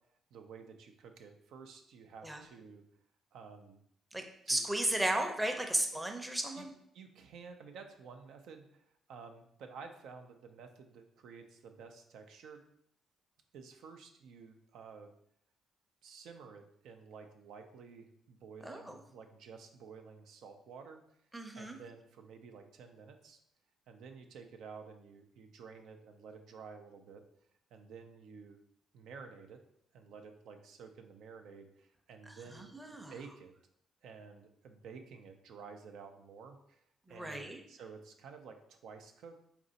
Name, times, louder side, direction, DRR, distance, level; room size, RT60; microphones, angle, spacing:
voice 1, 0.3-2.8 3.3-3.8 4.5-4.7 6.6-6.7 6.9-12.6 13.5-15.1 16.0-21.0 21.6-23.4 23.9-27.2 27.7-28.6 28.9-29.6 29.9-32.7 33.1-33.5 34.0-36.8 37.1-39.4, right 5 dB, 80° right, 5 dB, 0.4 m, -52 dB
voice 2, 4.1-6.7 18.6-19.0 21.3-21.8 32.3-33.1 37.1-37.6, right 1 dB, 10° right, 4 dB, 0.6 m, -35 dB
4.1 x 2.6 x 3.9 m, 0.71 s
cardioid pair, 90°, 0 cm